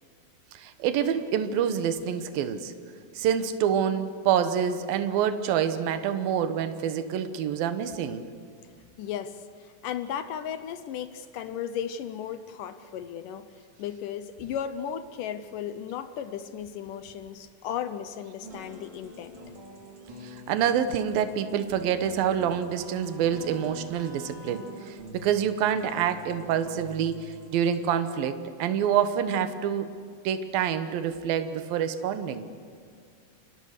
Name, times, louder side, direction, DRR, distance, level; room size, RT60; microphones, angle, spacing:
voice 1, 0.5-2.7 3.2-8.3 20.2-29.9 30.2-32.5, right 8 dB, 80° right, 9 dB, 2.9 m, -27 dB
voice 2, 9.0-13.5 13.8-19.4, left 9 dB, 75° left, 12 dB, 2.3 m, -35 dB
sound 1, 18.4-27.9, equal, 50° right, 4.8 m, -45 dB
29.0 x 25.5 x 6.7 m, 2.2 s
omnidirectional pair, 4.1 m